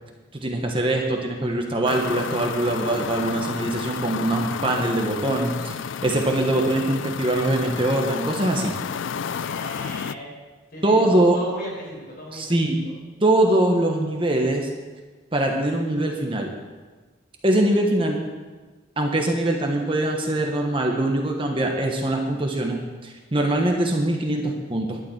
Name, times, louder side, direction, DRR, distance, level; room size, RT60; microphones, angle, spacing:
voice 1, 0.3-8.7 10.8-11.4 12.3-12.8 13.2-14.7 15.3-16.5 17.4-18.2 19.0-25.0, right 1 dB, 25° right, 1 dB, 1.2 m, -22 dB
sound 1, 1.8-10.1, left 7 dB, 80° left, 0.4 m, -31 dB
voice 2, 9.0-10.3 10.7-12.9, left 1 dB, 50° left, -3 dB, 5.0 m, -38 dB
12.0 x 7.0 x 9.1 m, 1.3 s
head